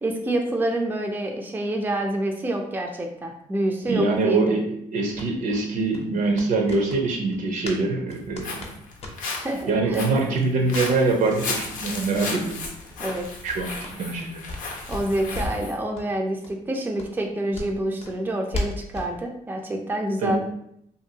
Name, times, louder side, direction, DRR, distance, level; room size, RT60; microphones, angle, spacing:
voice 1, 0.0-4.5 9.4-10.0 13.0-13.3 14.9-20.4, right 1 dB, 15° right, 2 dB, 0.4 m, -27 dB
voice 2, 3.9-8.7 9.7-12.6 13.4-14.4 20.2-20.4, right 3 dB, 70° right, 2 dB, 0.6 m, -24 dB
sound 1, 5.1-7.8 8.1-9.5 9.9-10.0 10.3-10.9 11.3-11.4 11.7-11.9 12.1-12.3 12.6-14.6 14.9-15.7 15.9-16.1 16.4-16.5 17.0-19.1, left 2 dB, 45° left, 0.7 m, -36 dB
Walk footsteps, 8.1-15.7, left 3 dB, 80° left, 0.6 m, -35 dB
2.7 x 2.5 x 2.7 m, 0.73 s
cardioid pair, 85°, 14 cm